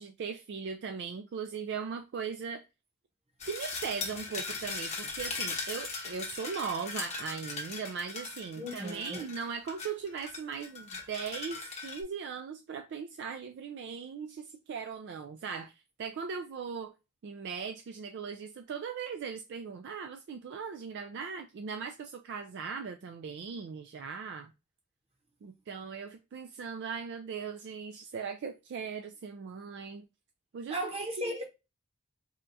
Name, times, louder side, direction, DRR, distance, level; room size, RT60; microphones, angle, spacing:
voice 1, 0.0-2.6 3.4-16.9 17.2-24.5 25.4-30.1 30.5-31.4, right 6 dB, 50° right, 0.3 m, -39 dB
sound 1, 3.4-12.0, left 4 dB, 30° left, 0.8 m, -39 dB
voice 2, 8.6-9.3 30.7-31.4, equal, 25° right, 0.8 m, -36 dB
4.2 x 2.3 x 2.6 m
head